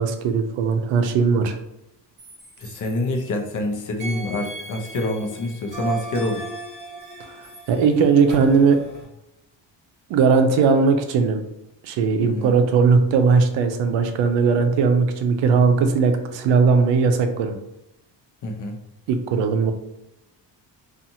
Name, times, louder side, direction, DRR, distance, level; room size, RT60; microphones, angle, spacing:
voice 1, 0.0-1.6 7.7-8.8 10.1-11.4 11.8-17.5 19.1-19.7, right 5 dB, 80° right, 6 dB, 0.6 m, -18 dB
sound 1, 2.2-3.6 4.0-9.0, right 3 dB, 25° right, 1.1 m, -36 dB
voice 2, 2.6-6.5 12.2-12.5 18.4-18.8, left 2 dB, 45° left, 2 dB, 0.6 m, -27 dB
2.7 x 2.4 x 2.7 m, 0.87 s
cardioid pair, 100°, 43 cm